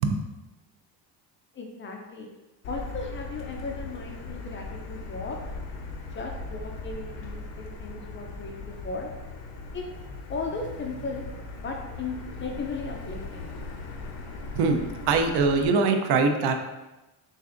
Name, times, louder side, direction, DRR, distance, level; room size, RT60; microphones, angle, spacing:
voice 1, 1.5-2.3 2.7-5.4 6.1-9.1 9.7-9.8 10.3-11.3 11.6-13.5, left 3 dB, 30° left, 1 dB, 0.4 m, -36 dB
Motor vehicle (road), 2.6-15.7, left 3 dB, 90° left, 0.8 m, -39 dB
voice 2, 14.5-16.5, right 4 dB, 65° right, 6 dB, 0.6 m, -23 dB
6.5 x 2.5 x 2.5 m, 1.1 s
cardioid pair, 145°, 43 cm